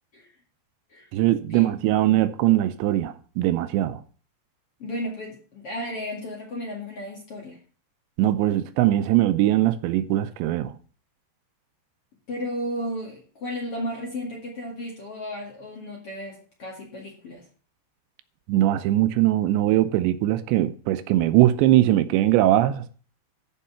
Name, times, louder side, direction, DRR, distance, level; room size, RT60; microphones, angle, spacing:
voice 1, 1.1-4.0 8.2-10.7 18.5-22.9, right 14 dB, 85° right, 2.9 m, -21 dB
voice 2, 4.8-7.6 12.3-17.4, equal, 45° left, 2.2 m, -34 dB
14.0 x 5.4 x 5.7 m
omnidirectional pair, 5.2 m